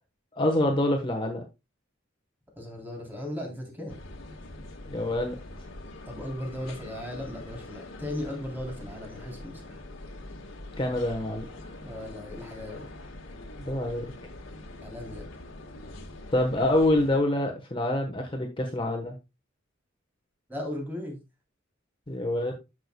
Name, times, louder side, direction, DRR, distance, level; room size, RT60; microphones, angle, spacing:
voice 1, 0.3-1.4 4.9-5.4 10.8-11.4 13.5-14.1 16.3-19.2 22.1-22.5, left 1 dB, 25° left, 2 dB, 1.1 m, -26 dB
voice 2, 2.5-4.0 6.0-9.8 11.8-12.9 14.8-15.3 20.5-21.2, left 1 dB, 10° right, -1 dB, 3.3 m, -37 dB
sound 1, 3.9-17.2, left 2 dB, 75° left, 1.6 m, -44 dB
11.0 x 6.8 x 2.2 m, 0.24 s
head